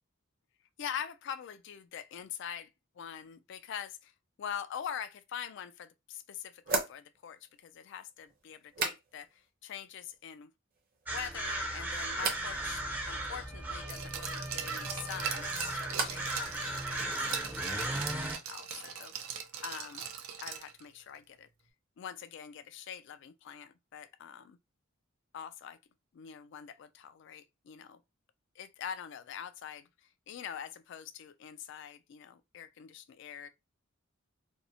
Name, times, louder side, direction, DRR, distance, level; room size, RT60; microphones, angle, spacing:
voice 1, 0.8-2.7 3.0-4.1 4.4-10.5 11.1-19.3 19.6-20.1 20.4-21.5 22.0-24.6 25.3-25.8 26.1-28.0 28.6-29.9 30.3-33.5, left 8 dB, 60° left, 0.3 m, -44 dB
sound 1, 5.4-5.5 6.6-9.5 9.8-10.4 10.7-11.3 12.2-12.5 14.9-16.4 16.7-17.3, right 3 dB, 45° right, 0.7 m, -39 dB
sound 2, 11.1-18.4, right 1 dB, 10° right, 0.5 m, -36 dB
Glass, 13.9-20.8 21.1-21.2, right 8 dB, 85° right, 0.4 m, -40 dB
2.6 x 2.0 x 2.7 m
head